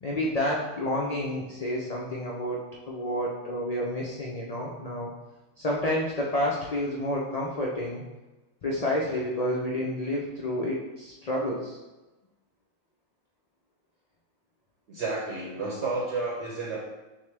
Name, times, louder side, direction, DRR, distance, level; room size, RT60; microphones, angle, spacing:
voice 1, 0.0-2.6 2.9-5.1 5.6-8.0 8.6-11.8, left 1 dB, 85° left, -3 dB, 0.3 m, -29 dB
voice 2, 14.9-16.8, right 3 dB, 60° right, -4 dB, 0.9 m, -31 dB
6.1 x 2.1 x 3.3 m, 1.1 s
omnidirectional pair, 1.4 m